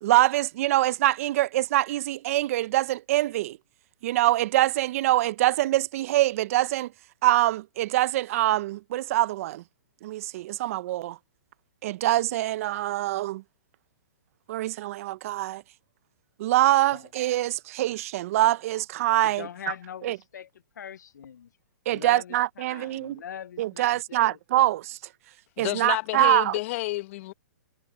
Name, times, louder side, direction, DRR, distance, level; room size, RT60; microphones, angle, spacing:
voice 1, 0.0-3.6 4.0-6.9 7.2-9.6 10.0-11.2 11.8-13.4 14.5-15.6 16.4-19.5 20.0-20.2 21.9-23.2 23.6-25.0 25.6-26.5, right 15 dB, 50° right, 0.9 m, -24 dB
voice 2, 19.2-20.5 20.8-21.5 21.9-24.4 26.2-26.4, left 9 dB, 75° left, 1.0 m, -41 dB
voice 3, 25.6-27.3, left 19 dB, 45° left, 1.3 m, -30 dB
hypercardioid pair, 130°, 10 cm